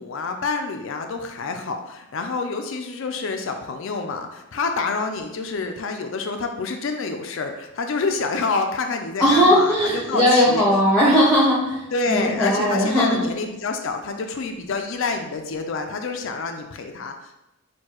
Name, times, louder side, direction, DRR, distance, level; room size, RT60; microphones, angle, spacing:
voice 1, 0.0-10.6 11.9-17.4, left 4 dB, 60° left, 5 dB, 0.4 m, -28 dB
voice 2, 9.2-13.2, equal, ahead, -6 dB, 0.8 m, -18 dB
6.4 x 2.3 x 2.9 m, 0.91 s
head